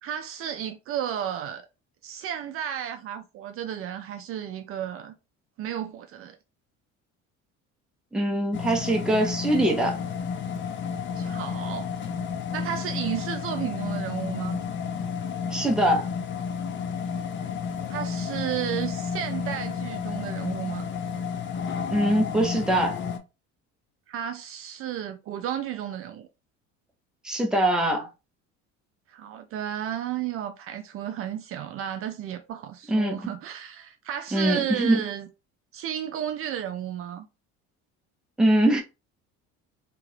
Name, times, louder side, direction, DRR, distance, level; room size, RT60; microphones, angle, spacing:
voice 1, 0.0-1.7 2.0-5.1 5.6-6.4 11.2-11.9 12.5-14.6 17.9-20.9 24.1-26.3 29.1-35.3 35.7-37.3, right 10 dB, 50° right, 0.4 m, -33 dB
voice 2, 8.1-10.0 15.5-16.1 21.9-23.0 27.2-28.1 32.9-33.3 34.3-35.0 38.4-38.8, right 1 dB, ahead, 0.6 m, -23 dB
sound 1, 8.5-23.2, left 6 dB, 40° left, 0.5 m, -31 dB
2.9 x 2.4 x 3.1 m
cardioid pair, 140°, 30 cm